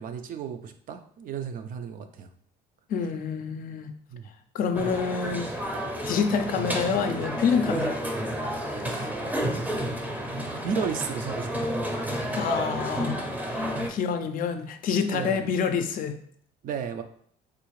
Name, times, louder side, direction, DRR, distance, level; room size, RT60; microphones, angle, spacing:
voice 1, 0.0-2.3 4.1-4.3 8.9-9.1 10.5-11.8 13.8-13.9 15.1-15.4 16.6-17.0, right 7 dB, 50° right, 8 dB, 0.4 m, -34 dB
voice 2, 2.9-3.9 4.5-5.5 6.1-8.0 12.3-16.2, left 6 dB, 55° left, 7 dB, 0.4 m, -27 dB
sound 1, 4.7-13.9, equal, 10° right, 0.6 m, -30 dB
3.6 x 2.4 x 3.1 m, 0.63 s
cardioid pair, 105°, 18 cm